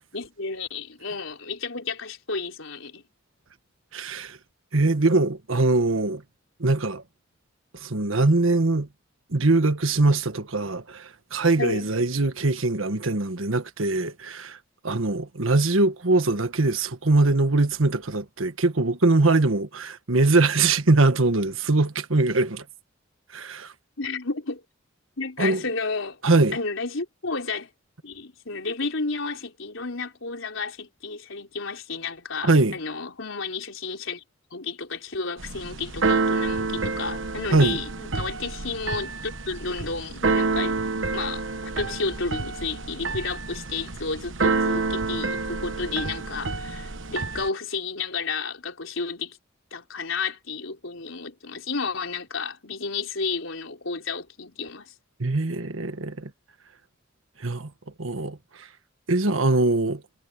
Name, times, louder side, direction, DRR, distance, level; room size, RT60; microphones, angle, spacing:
voice 1, 0.1-3.0 11.6-11.9 24.0-24.6 25.2-26.2 26.5-27.7 28.0-34.2 34.5-40.8 41.1-41.4 41.8-49.4 49.7-54.9, left 4 dB, 80° left, 3.9 m, -32 dB
voice 2, 3.9-4.4 4.7-6.2 6.6-7.0 7.8-8.9 9.3-14.6 14.8-22.6 23.3-23.7 25.4-25.6 26.2-26.6 32.4-32.8 37.5-37.8 55.2-56.3 57.4-57.7 58.0-58.7 59.1-60.0, right 2 dB, 90° right, 1.5 m, -22 dB
Keyboard (musical), 35.4-47.5, right 3 dB, 70° right, 1.1 m, -28 dB
head